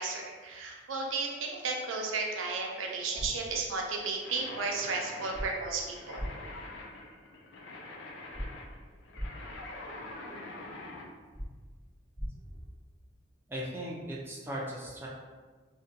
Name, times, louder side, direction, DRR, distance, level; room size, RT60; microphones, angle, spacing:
voice 1, 0.0-6.2, right 3 dB, 80° right, 0 dB, 0.4 m, -34 dB
sound 1, 3.1-3.3 5.3-5.5 6.1-6.3 8.3-8.5 9.1-9.3 11.3-11.5 12.1-12.3, equal, 10° left, 0.8 m, -36 dB
sound 2, 4.2-11.1, left 2 dB, 65° left, 0.4 m, -45 dB
voice 2, 13.5-15.1, equal, 10° right, -5 dB, 0.3 m, -38 dB
2.5 x 2.1 x 2.6 m, 1.4 s
head